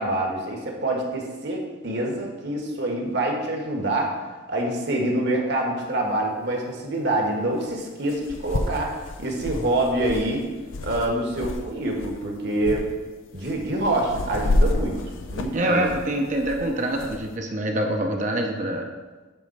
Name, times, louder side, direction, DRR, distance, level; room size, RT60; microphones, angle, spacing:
voice 1, 0.0-4.1 4.5-10.4 10.8-12.8 13.3-15.0 15.3-15.9, right 1 dB, 55° right, 1 dB, 1.5 m, -26 dB
sound 1, 5.8-5.9 7.7-7.8 8.1-11.6 11.9-12.2 12.6-12.8 13.3-17.2, left 2 dB, 75° left, 0.6 m, -29 dB
voice 2, 15.5-18.9, right 1 dB, 40° right, 2 dB, 0.8 m, -25 dB
8.5 x 3.7 x 6.7 m, 1.3 s
head